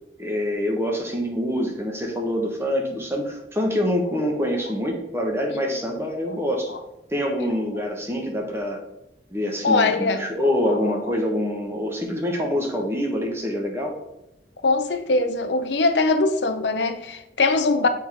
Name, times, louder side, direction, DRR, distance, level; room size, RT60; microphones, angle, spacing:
voice 1, 0.2-6.7 7.1-8.8 9.3-13.9, equal, 15° right, 1.1 m, -25 dB
voice 2, 9.6-10.2 10.7-11.0 14.6-17.9, left 3 dB, 80° left, 0.7 m, -22 dB
7.1 x 3.7 x 4.7 m
head